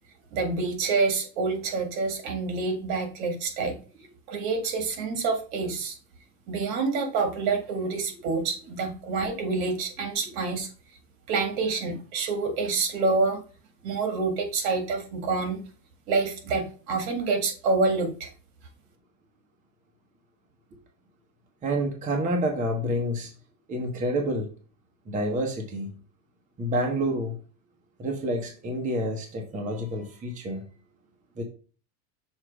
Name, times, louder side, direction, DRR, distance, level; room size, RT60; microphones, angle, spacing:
voice 1, 0.3-3.8 4.3-6.0 6.5-10.7 11.3-13.4 13.8-15.6 16.1-18.3, right 4 dB, 55° right, 5 dB, 2.0 m, -27 dB
voice 2, 21.6-23.3 23.7-24.5 25.1-25.9 26.6-27.4 28.0-30.6 31.4-31.5, right 1 dB, 15° right, 2 dB, 0.9 m, -28 dB
6.4 x 3.1 x 4.9 m, 0.39 s
supercardioid pair, 135°, 48 cm